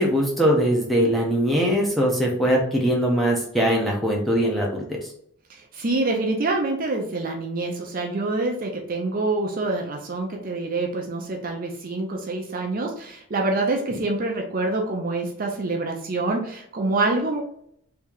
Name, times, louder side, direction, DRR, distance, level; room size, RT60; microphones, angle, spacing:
voice 1, 0.0-4.8, equal, ahead, -2 dB, 0.7 m, -21 dB
voice 2, 5.7-17.4, right 2 dB, 40° right, 2 dB, 0.5 m, -26 dB
3.2 x 2.8 x 3.6 m, 0.68 s
head